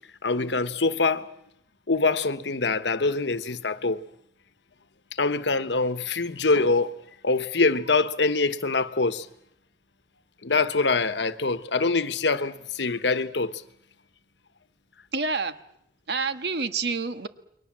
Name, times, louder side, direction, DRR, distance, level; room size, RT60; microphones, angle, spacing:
voice 1, 0.2-1.3 1.9-4.0 5.2-6.9 7.2-9.3 10.4-13.6, left 3 dB, 85° left, 1.2 m, -24 dB
voice 2, 15.1-15.5 16.1-17.3, right 4 dB, 70° right, 1.5 m, -28 dB
29.0 x 22.5 x 7.5 m
head